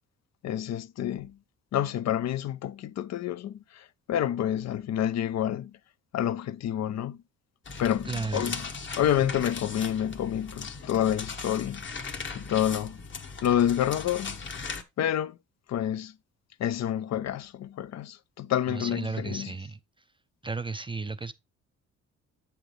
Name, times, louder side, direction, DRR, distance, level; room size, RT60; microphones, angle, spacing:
voice 1, 0.4-1.4 1.7-5.7 6.1-7.2 7.8-8.6 9.0-13.0 13.4-14.4 15.0-15.4 15.7-16.1 16.6-19.5, left 10 dB, 60° left, 0.6 m, -28 dB
sound 1, 7.6-14.8, left 4 dB, 40° left, 1.2 m, -38 dB
voice 2, 8.1-8.6 18.7-19.8 20.4-21.3, right 3 dB, 15° right, 0.4 m, -34 dB
8.2 x 6.0 x 3.2 m
cardioid pair, 90°, 30 cm